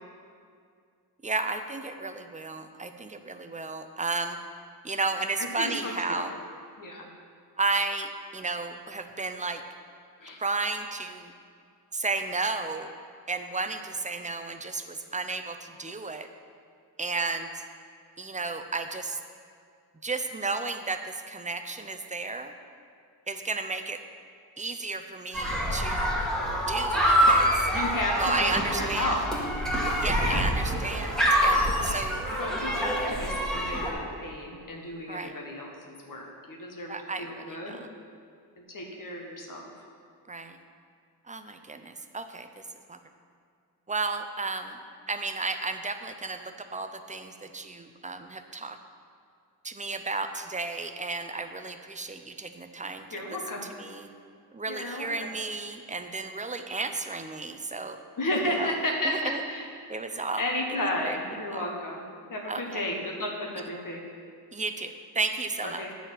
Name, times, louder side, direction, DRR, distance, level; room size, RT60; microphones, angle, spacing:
voice 1, 1.2-4.4 4.8-6.3 7.6-9.6 10.4-11.3 11.9-12.9 13.3-16.3 17.0-17.5 18.2-19.2 20.0-22.5 23.3-24.0 24.6-26.2 26.7-27.5 28.1-29.2 30.0-32.2 35.1-35.3 36.9-37.8 40.3-40.6 41.3-42.5 42.9-43.0 43.9-44.8 45.1-48.8 49.6-53.1 53.8-54.1 54.5-58.0 58.6-58.7 59.0-59.4 59.9-60.4 61.1-61.2 61.5-61.7 62.5-62.8 64.5-65.8, right 3 dB, 20° right, 8 dB, 0.5 m, -33 dB
voice 2, 5.4-6.2 6.8-7.1 10.2-10.4 27.7-29.2 30.2-30.4 32.3-37.8 38.6-39.7 53.1-53.6 54.7-55.3 58.2-59.7 60.1-62.0 62.3-64.0 65.6-65.9, left 1 dB, 50° left, 0 dB, 1.4 m, -33 dB
sound 1, 25.3-33.9, equal, ahead, 2.1 m, -26 dB
9.8 x 4.2 x 7.4 m, 2.3 s
cardioid pair, 100°, 42 cm